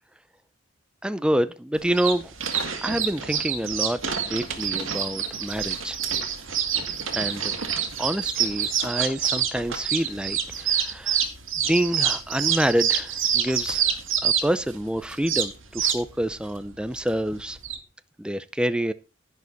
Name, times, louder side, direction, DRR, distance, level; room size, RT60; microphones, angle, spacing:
voice 1, 1.0-2.3 2.8-6.0 7.1-7.5 8.0-11.2 11.6-13.9 14.2-17.6 18.2-18.9, right 1 dB, 5° right, 12 dB, 0.5 m, -27 dB
sound 1, 1.8-17.8, right 8 dB, 80° right, 2.1 m, -27 dB
11.0 x 10.5 x 4.1 m, 0.30 s
head